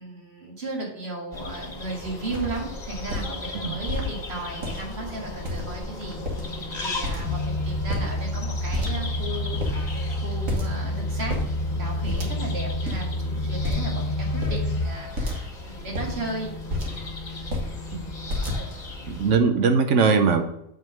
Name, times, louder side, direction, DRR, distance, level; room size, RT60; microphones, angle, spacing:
voice 1, 0.0-6.2 6.8-11.4 11.7-16.5, right 2 dB, 50° right, -1 dB, 2.0 m, -35 dB
sound 1, 1.3-19.4, left 2 dB, 35° left, 1.3 m, -36 dB
sound 2, 1.9-2.0 2.3-2.6 3.0-3.3 3.9-4.1 4.5-5.0 5.5-5.9 6.1-6.6 7.0-7.5 7.8-8.4 8.7-9.3 9.6-9.8 10.5-10.8 11.1-11.5 12.1-12.6 12.8-13.0 13.6-14.0 14.4-14.6 15.2-15.5 15.8-17.1 17.4-17.7 18.3-18.9, left 1 dB, 90° right, 1.9 m, -30 dB
sound 3, 7.3-14.8, left 1 dB, 65° left, 1.4 m, -28 dB
voice 2, 19.1-20.4, right 5 dB, 70° right, 7 dB, 1.0 m, -20 dB
7.9 x 3.8 x 6.2 m, 0.78 s
omnidirectional pair, 1.4 m